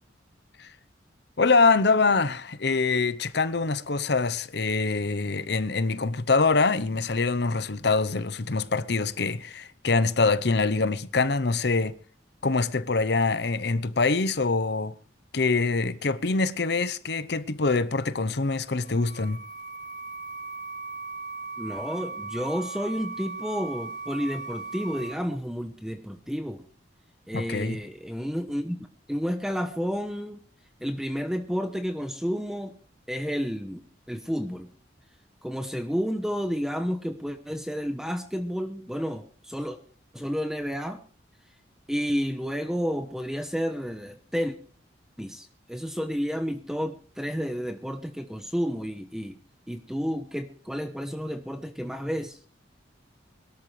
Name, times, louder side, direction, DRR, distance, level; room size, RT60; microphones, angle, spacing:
voice 1, 1.4-11.9 12.4-14.9 15.3-19.4 27.3-27.8, left 3 dB, 60° left, 0.8 m, -24 dB
sound 1, 18.6-25.1, right 4 dB, 25° left, 4.9 m, -38 dB
voice 2, 21.6-26.6 27.3-30.4 30.8-32.7 33.1-34.7 35.4-39.8 40.1-41.0 41.9-44.6 45.2-49.4 49.7-52.4, equal, 5° right, 0.9 m, -31 dB
22.0 x 12.5 x 3.3 m
head